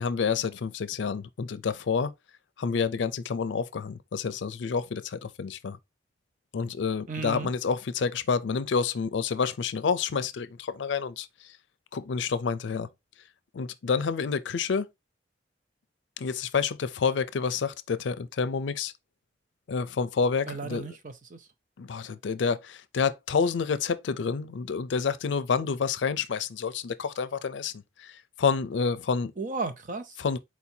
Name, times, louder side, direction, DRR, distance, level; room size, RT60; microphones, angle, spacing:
voice 1, 0.0-2.1 2.6-5.8 6.5-11.6 11.9-12.9 13.5-14.9 16.2-18.9 19.7-20.8 21.8-29.3 30.2-30.4, left 5 dB, 90° left, 0.4 m, -29 dB
voice 2, 7.1-7.5 20.5-21.5 29.4-30.2, right 4 dB, 45° right, 0.5 m, -35 dB
4.3 x 2.8 x 4.3 m
head